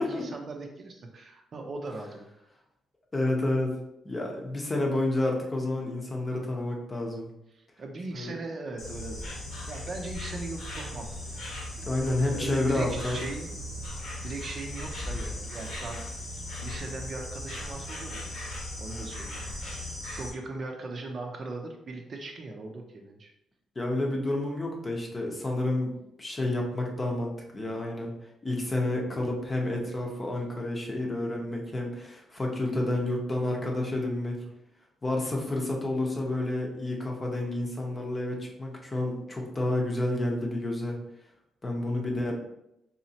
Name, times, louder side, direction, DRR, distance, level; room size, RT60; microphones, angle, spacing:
voice 1, 0.1-2.3 7.5-9.2 9.7-11.4 12.3-13.5 14.2-16.0 16.3-18.5 18.8-23.3 26.4-26.6, right 3 dB, 45° right, 3 dB, 0.6 m, -39 dB
voice 2, 3.1-3.8 4.0-7.3 8.1-8.4 11.8-13.2 23.8-25.9 26.2-28.1 28.4-34.4 35.0-40.9 41.6-42.3, left 1 dB, 25° left, 0 dB, 0.8 m, -30 dB
Insect, 8.8-20.3, left 1 dB, 75° left, 1.3 m, -37 dB
4.0 x 3.0 x 2.8 m, 0.84 s
cardioid pair, 110°, 0 cm